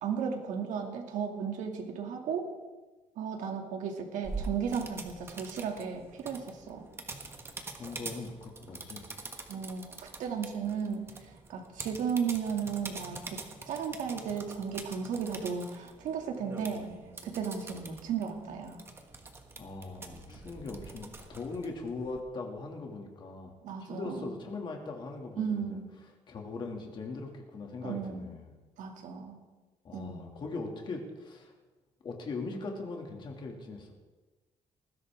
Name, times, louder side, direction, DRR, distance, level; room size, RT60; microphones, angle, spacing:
voice 1, 0.0-2.5 3.2-6.9 9.5-11.1 11.5-13.4 13.7-16.9 17.2-18.8 23.6-24.3 25.4-25.8 27.8-28.3 28.8-29.4 29.9-30.3, right 6 dB, 85° right, 2 dB, 2.5 m, -35 dB
sound 1, 4.2-22.2, right 3 dB, 20° right, 1.3 m, -45 dB
voice 2, 7.8-9.0 19.6-23.5 23.9-25.8 26.3-28.5 29.8-31.5 32.0-33.9, left 3 dB, 40° left, 2 dB, 2.4 m, -40 dB
20.0 x 15.5 x 3.6 m, 1.2 s
cardioid pair, 180°, 13 cm